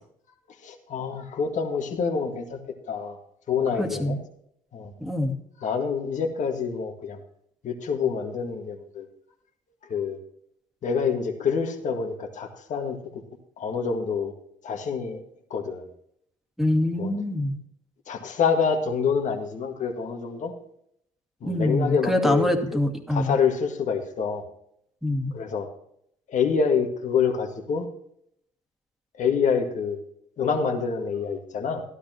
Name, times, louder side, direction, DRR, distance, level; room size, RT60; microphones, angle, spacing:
voice 1, 0.6-2.6 2.9-3.2 3.5-4.2 4.7-4.9 5.6-7.2 7.6-9.1 9.8-10.2 10.8-13.2 13.6-14.3 14.6-15.2 15.5-15.9 17.0-17.1 18.1-20.5 21.4-22.8 23.1-24.4 25.3-25.7 26.3-27.9 29.2-30.0 30.4-31.8, left 6 dB, 55° left, 3 dB, 1.9 m, -26 dB
voice 2, 3.8-4.2 5.0-5.4 16.6-17.6 21.4-23.4 25.0-25.4, left 1 dB, ahead, 4 dB, 2.1 m, -24 dB
13.0 x 12.0 x 3.0 m, 0.70 s
hypercardioid pair, 60°, 15 cm